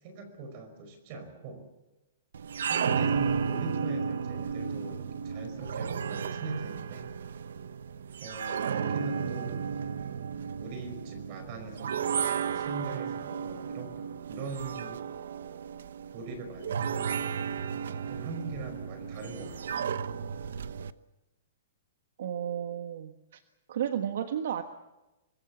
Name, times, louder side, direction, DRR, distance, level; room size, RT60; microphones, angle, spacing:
voice 1, 0.0-1.6 2.6-7.1 8.2-9.7 10.6-15.0 16.1-17.3 17.8-19.8, right 3 dB, 30° right, 8 dB, 5.2 m, -41 dB
sound 1, 2.3-20.9, right 7 dB, 80° right, 1.0 m, -33 dB
voice 2, 22.2-23.4 23.7-24.6, right 9 dB, 55° right, 7 dB, 1.4 m, -33 dB
25.5 x 20.0 x 7.3 m, 1.1 s
hypercardioid pair, 175°, 0 cm